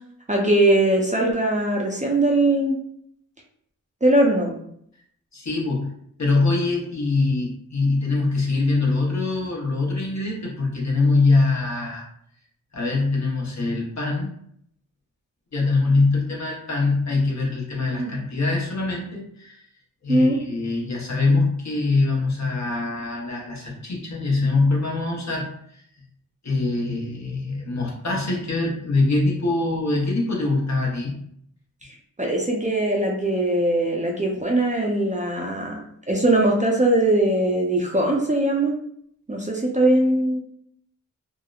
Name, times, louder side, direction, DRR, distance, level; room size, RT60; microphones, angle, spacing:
voice 1, 0.3-2.8 4.0-4.6 18.0-18.2 20.1-20.4 32.2-38.8 39.3-40.4, right 1 dB, 20° right, -1 dB, 0.5 m, -21 dB
voice 2, 5.3-5.9 6.2-12.1 12.7-14.3 15.5-19.6 20.0-25.5 25.7-25.8 26.4-31.2, left 3 dB, 50° left, -2 dB, 0.8 m, -23 dB
2.8 x 2.0 x 2.3 m, 0.68 s
cardioid pair, 55°, 34 cm